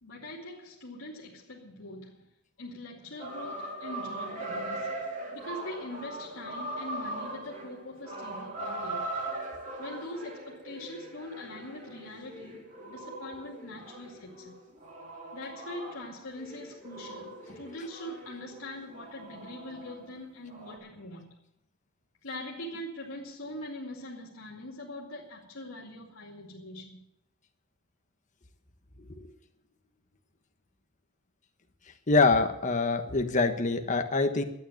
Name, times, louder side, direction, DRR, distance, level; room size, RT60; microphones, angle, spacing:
voice 1, 0.0-2.3 2.6-4.9 5.3-9.0 9.8-14.6 15.3-21.3 22.2-27.0, left 1 dB, 85° left, 2.4 m, -42 dB
sound 1, 3.2-20.2 20.5-20.8, right 2 dB, 40° right, 2.9 m, -40 dB
voice 2, 32.1-34.4, left 3 dB, 40° left, 1.3 m, -24 dB
12.0 x 9.4 x 9.1 m
head